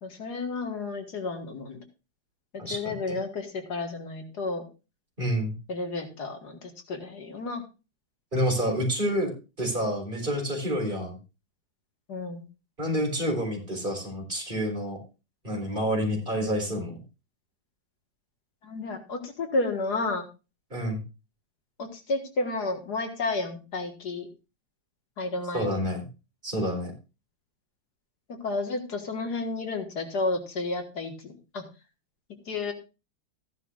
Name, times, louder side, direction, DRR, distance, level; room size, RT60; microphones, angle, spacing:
voice 1, 0.0-1.8 2.5-4.6 5.7-7.6 12.1-12.4 18.6-20.2 21.8-24.3 25.2-25.8 28.4-31.6 32.5-32.7, left 3 dB, 70° left, 5 dB, 2.2 m, -31 dB
voice 2, 2.6-2.9 5.2-5.5 8.3-11.2 12.8-15.0 15.4-17.0 20.7-21.0 25.5-26.1 26.4-26.9, equal, 30° right, 1 dB, 4.3 m, -28 dB
15.0 x 11.0 x 2.5 m, 0.30 s
omnidirectional pair, 1.8 m